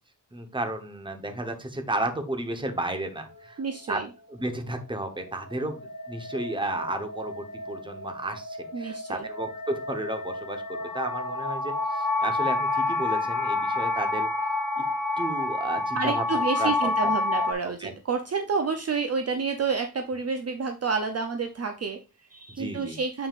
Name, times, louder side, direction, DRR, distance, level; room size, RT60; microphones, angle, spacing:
voice 1, 0.3-3.6 3.9-4.0 4.3-14.3 14.8-14.9 15.2-16.9 17.4-17.5 17.8-17.9 22.5-23.0, right 1 dB, 10° right, 7 dB, 0.9 m, -33 dB
voice 2, 3.6-4.1 8.7-9.3 15.9-23.3, right 5 dB, 40° right, 5 dB, 0.5 m, -29 dB
sound 1, 4.7-17.5, left 2 dB, 55° left, 1.0 m, -29 dB
7.1 x 6.0 x 2.4 m, 0.29 s
wide cardioid pair, 175°, 39 cm